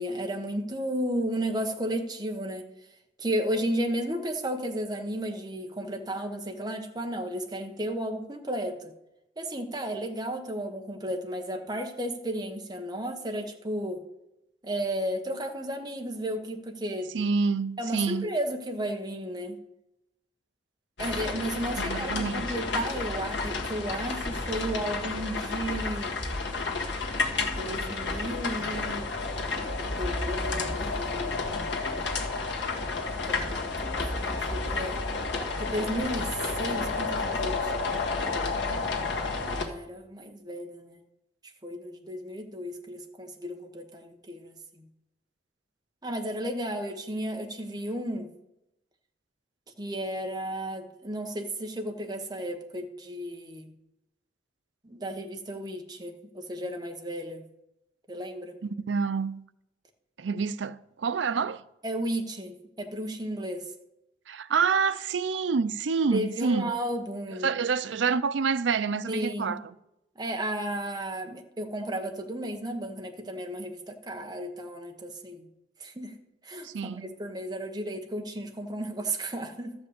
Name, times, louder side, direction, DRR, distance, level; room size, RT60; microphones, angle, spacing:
voice 1, 0.0-2.6 3.2-8.9 9.4-14.0 14.6-17.1 17.8-19.6 21.0-26.2 27.6-29.1 29.9-31.6 33.2-35.0 35.6-36.3 36.6-38.0 39.4-41.0 41.6-44.8 46.0-48.3 49.8-53.7 54.8-57.4 58.1-58.6 61.8-63.7 66.1-67.5 69.1-69.6 70.1-75.5 75.8-76.1 76.4-79.7, right 1 dB, 20° right, 1.2 m, -33 dB
voice 2, 17.1-18.3 21.8-22.5 58.6-59.4 60.2-61.6 64.3-66.7 67.4-69.6 76.6-77.1, right 5 dB, 90° right, 0.5 m, -27 dB
sound 1, 21.0-39.6, left 3 dB, 75° left, 1.7 m, -31 dB
13.0 x 5.3 x 8.1 m
head